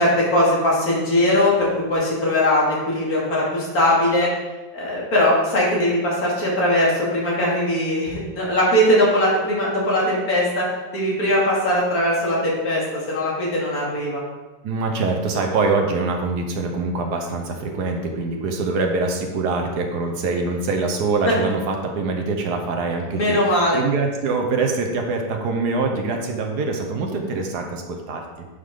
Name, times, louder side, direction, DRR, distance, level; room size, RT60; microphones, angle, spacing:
voice 1, 0.0-4.3 4.7-10.6 10.9-14.2 21.3-21.4 23.1-23.8, left 1 dB, 65° left, -5 dB, 2.8 m, -20 dB
voice 2, 14.6-28.2, right 3 dB, 85° right, 2 dB, 1.6 m, -24 dB
10.0 x 5.5 x 3.7 m, 1.2 s
omnidirectional pair, 1.7 m